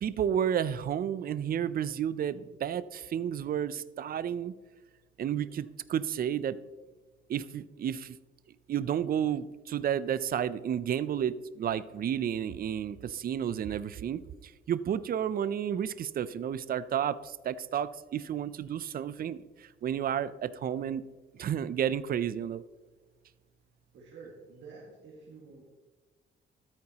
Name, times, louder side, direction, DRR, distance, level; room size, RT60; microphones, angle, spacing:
voice 1, 0.0-4.5 5.2-6.6 7.3-8.1 8.7-14.2 14.7-17.2 17.4-19.4 19.8-21.0 21.4-22.6, right 9 dB, 50° right, 16 dB, 0.5 m, -31 dB
voice 2, 23.9-25.7, right 4 dB, 65° right, -3 dB, 2.0 m, -49 dB
13.5 x 8.9 x 2.9 m, 1.3 s
cardioid pair, 90°, 20 cm